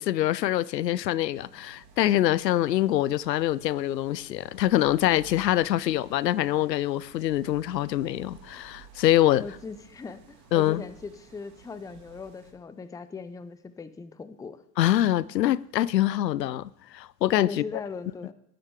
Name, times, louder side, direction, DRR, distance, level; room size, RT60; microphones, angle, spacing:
voice 1, 0.0-9.4 10.5-10.8 14.8-17.6, left 13 dB, 80° left, 0.6 m, -24 dB
sound 1, 1.3-12.5, right 7 dB, 60° right, 3.7 m, -53 dB
voice 2, 9.4-14.6 17.4-18.3, left 4 dB, 5° left, 0.6 m, -39 dB
18.5 x 9.9 x 3.4 m
hypercardioid pair, 85°, 50 cm